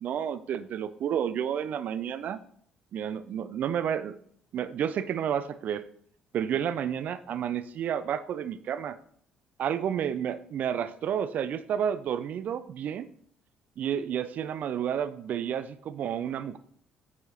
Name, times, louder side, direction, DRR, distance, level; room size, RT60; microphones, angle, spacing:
voice 1, 0.0-2.4 2.9-4.2 4.5-5.8 6.3-9.0 9.6-13.1 13.8-16.6, right 9 dB, 50° right, 14 dB, 0.4 m, -31 dB
8.9 x 4.8 x 2.8 m, 0.62 s
figure-of-eight pair, 45°, 4 cm